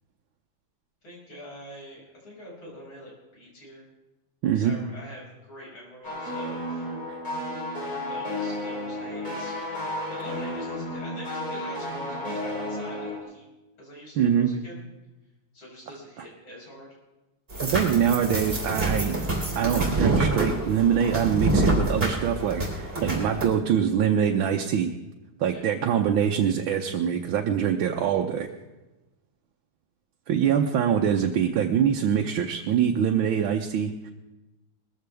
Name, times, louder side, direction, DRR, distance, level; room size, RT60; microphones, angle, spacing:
voice 1, 1.0-3.9 4.5-6.9 8.1-9.6 10.1-13.5 13.8-14.8 15.5-16.9 25.5-25.8, equal, 90° left, -4 dB, 6.9 m, -45 dB
voice 2, 4.4-4.8 14.2-14.5 17.6-19.1 19.6-24.9 25.4-28.5 30.3-34.1, right 8 dB, 85° right, 2 dB, 1.7 m, -24 dB
sound 1, 6.0-13.2, left 1 dB, 20° left, 4.1 m, -32 dB
sound 2, 17.5-23.5, right 2 dB, 25° right, 3.5 m, -26 dB
21.0 x 14.5 x 3.4 m, 1.0 s
omnidirectional pair, 2.2 m